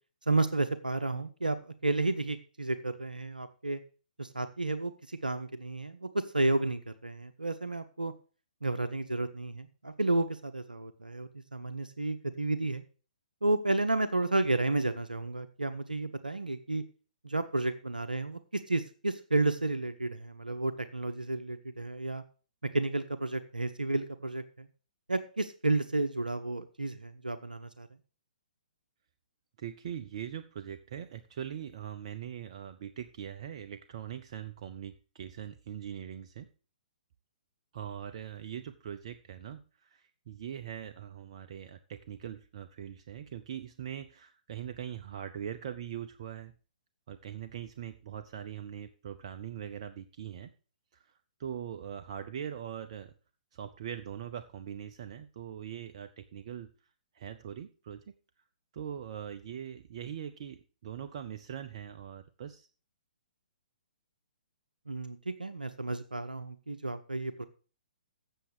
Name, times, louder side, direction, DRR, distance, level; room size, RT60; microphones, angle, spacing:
voice 1, 0.3-1.6 1.8-3.8 4.2-8.1 8.6-12.8 13.4-16.8 17.2-22.2 22.7-24.7 25.1-27.9 64.9-67.4, right 2 dB, 85° right, 10 dB, 0.8 m, -32 dB
voice 2, 29.6-36.5 37.7-46.5 47.1-50.5 50.9-51.1 51.4-53.1 53.5-56.7 57.1-58.1 58.7-62.7, right 9 dB, 45° right, 9 dB, 0.7 m, -41 dB
7.9 x 7.2 x 6.7 m, 0.37 s
figure-of-eight pair, 125°, 4 cm